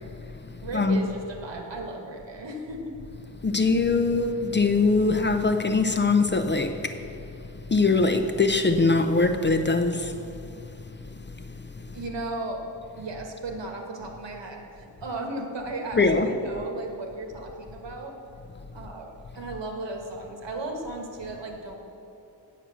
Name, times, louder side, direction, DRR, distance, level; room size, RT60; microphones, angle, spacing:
voice 1, 0.6-2.9 11.9-12.7 13.0-18.1 18.7-21.8, right 2 dB, 80° right, 1.5 m, -35 dB
voice 2, 3.4-7.0 7.7-10.5 11.8-11.9 15.9-16.3, left 3 dB, 25° left, 0.4 m, -22 dB
9.1 x 7.5 x 6.2 m
wide cardioid pair, 135°, 43 cm